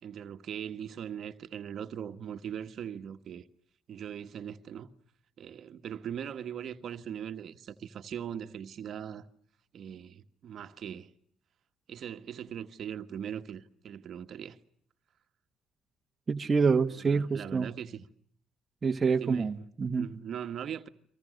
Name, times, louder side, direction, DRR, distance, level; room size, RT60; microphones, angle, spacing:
voice 1, 0.0-3.5 3.9-4.9 5.4-9.3 9.7-11.1 11.9-14.6 17.0-18.1 19.2-19.6 20.0-20.9, right 9 dB, 50° right, 1.5 m, -40 dB
voice 2, 16.3-17.7 18.8-20.1, right 5 dB, 25° right, 1.3 m, -27 dB
29.5 x 25.0 x 6.5 m
cardioid pair, 110°, 0 cm